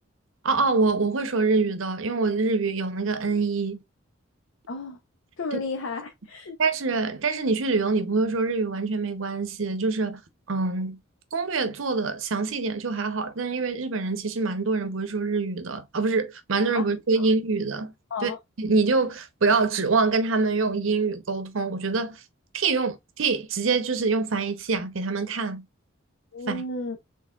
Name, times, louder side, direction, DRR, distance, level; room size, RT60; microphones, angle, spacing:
voice 1, 0.4-3.8 5.5-5.6 6.6-10.2 10.5-11.0 11.3-17.9 18.2-18.3 18.6-22.2 22.5-25.6 26.5-26.6, right 4 dB, 70° right, 0.7 m, -25 dB
voice 2, 4.7-5.0 5.4-6.6 16.7-16.9 17.2-17.3 18.1-18.4 26.3-27.0, left 3 dB, 70° left, 0.6 m, -33 dB
4.3 x 3.3 x 2.3 m
head